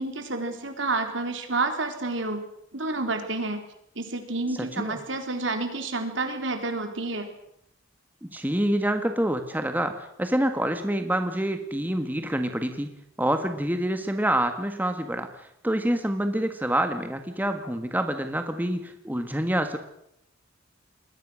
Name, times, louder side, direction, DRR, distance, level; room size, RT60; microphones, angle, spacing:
voice 1, 0.0-2.4 2.7-3.6 4.0-7.3, right 3 dB, 65° right, 6 dB, 3.9 m, -29 dB
voice 2, 8.2-19.8, right 1 dB, 10° right, 7 dB, 1.5 m, -27 dB
27.5 x 21.0 x 6.4 m, 0.76 s
head